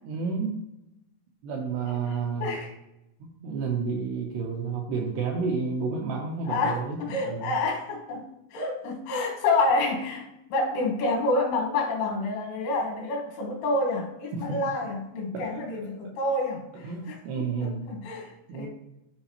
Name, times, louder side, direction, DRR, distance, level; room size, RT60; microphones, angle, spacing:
voice 1, 0.0-0.7 1.4-2.5 3.2-7.6 14.3-14.6 15.3-15.6 16.8-17.9 18.5-18.7, right 5 dB, 80° right, 0 dB, 2.4 m, -31 dB
voice 2, 6.4-8.3 8.5-18.7, left 2 dB, 85° left, 0 dB, 4.0 m, -28 dB
12.5 x 4.9 x 3.0 m, 0.89 s
omnidirectional pair, 5.7 m